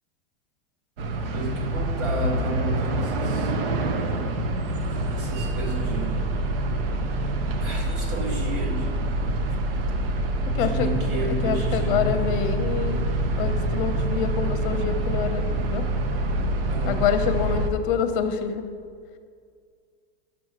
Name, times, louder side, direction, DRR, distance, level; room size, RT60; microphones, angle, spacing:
sound 1, 1.0-17.7, right 1 dB, 65° right, 0.8 m, -26 dB
voice 1, 1.3-3.6 4.9-6.2 7.6-9.1 9.5-9.6 10.5-12.2 16.7-17.1, right 1 dB, 40° right, 0 dB, 1.6 m, -32 dB
voice 2, 10.5-10.9 11.4-13.0 13.4-15.4 15.7-15.8 16.9-18.7, left 7 dB, 55° left, 8 dB, 0.8 m, -26 dB
6.2 x 6.2 x 6.0 m, 2.1 s
supercardioid pair, 160°, 31 cm